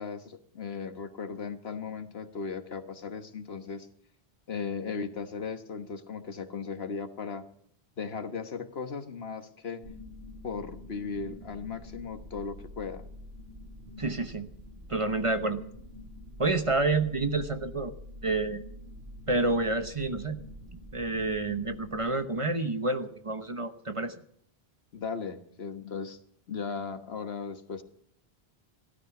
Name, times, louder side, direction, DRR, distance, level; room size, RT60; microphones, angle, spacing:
voice 1, 0.0-3.9 4.5-7.4 8.0-9.8 10.4-13.0 24.9-26.2 26.5-27.8, left 5 dB, 75° left, 9 dB, 1.5 m, -37 dB
sound 1, 9.8-22.0, left 1 dB, 60° right, 4.9 m, -46 dB
voice 2, 14.0-14.5 14.9-15.6 16.4-17.9 18.2-18.6 19.3-20.4 20.9-24.1, right 2 dB, 35° right, 9 dB, 1.0 m, -29 dB
16.0 x 13.0 x 5.9 m, 0.66 s
omnidirectional pair, 1.0 m